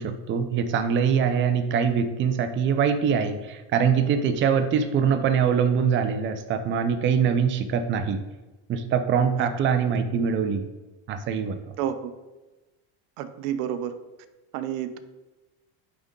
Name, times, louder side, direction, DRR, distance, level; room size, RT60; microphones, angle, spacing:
voice 1, 0.0-8.2 8.7-10.6 11.1-11.6, right 7 dB, 30° right, 8 dB, 0.5 m, -23 dB
voice 2, 11.8-12.1 13.2-13.9 14.5-15.0, right 10 dB, 85° right, 11 dB, 0.7 m, -29 dB
9.2 x 3.7 x 3.8 m, 1.1 s
cardioid pair, 135°, 40 cm